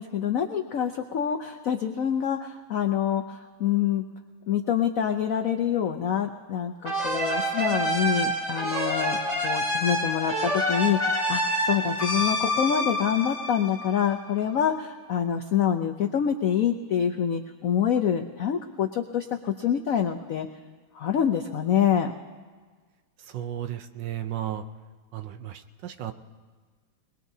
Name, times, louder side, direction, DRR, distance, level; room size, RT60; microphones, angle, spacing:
voice 1, 0.0-4.0 4.5-9.2 9.4-20.5 20.9-22.1, left 8 dB, 75° left, 6 dB, 0.7 m, -26 dB
sound 1, 6.8-14.3, equal, 20° right, 2.5 m, -27 dB
voice 2, 23.3-24.6 25.1-26.1, right 11 dB, 70° right, 9 dB, 1.3 m, -34 dB
22.0 x 21.5 x 2.7 m, 1.5 s
omnidirectional pair, 2.2 m